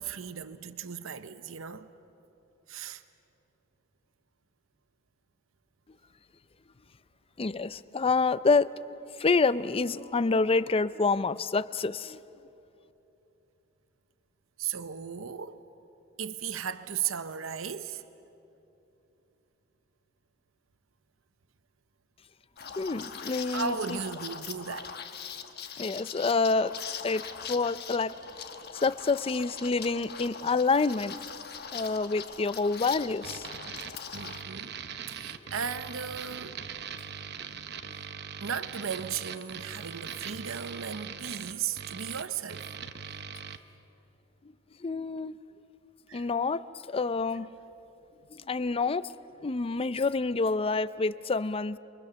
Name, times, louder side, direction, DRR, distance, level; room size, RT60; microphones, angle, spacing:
voice 1, 0.0-1.9 2.7-3.0 14.6-15.6 16.2-18.0 23.5-24.9 34.1-34.8 35.1-36.6 38.4-42.6 46.1-46.3, right 7 dB, 90° right, 0.8 m, -36 dB
voice 2, 7.4-8.7 9.2-12.2 22.8-24.0 25.8-26.7 27.0-27.2 27.5-28.1 28.7-31.2 31.7-33.5 44.8-45.3 46.1-46.6 46.9-47.5 48.5-49.1 49.4-51.8, left 4 dB, 30° left, 0.5 m, -27 dB
Liquid, 22.6-34.4, left 7 dB, 55° left, 1.2 m, -41 dB
sound 1, 33.2-43.6, right 7 dB, 55° right, 0.9 m, -41 dB
29.5 x 23.5 x 7.0 m
head